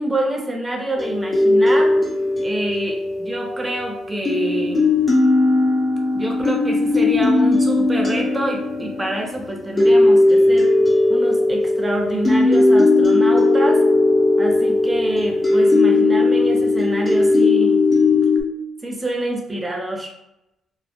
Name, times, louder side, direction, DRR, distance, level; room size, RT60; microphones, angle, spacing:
voice 1, 0.0-2.1 2.4-4.9 6.1-10.7 11.1-13.9 14.4-17.8 18.8-20.1, right 1 dB, 15° right, 1 dB, 0.6 m, -26 dB
sound 1, 1.0-3.8 4.3-18.4, left 2 dB, 30° left, 0.7 m, -17 dB
2.1 x 2.1 x 2.8 m, 0.88 s
cardioid pair, 90°, 0 cm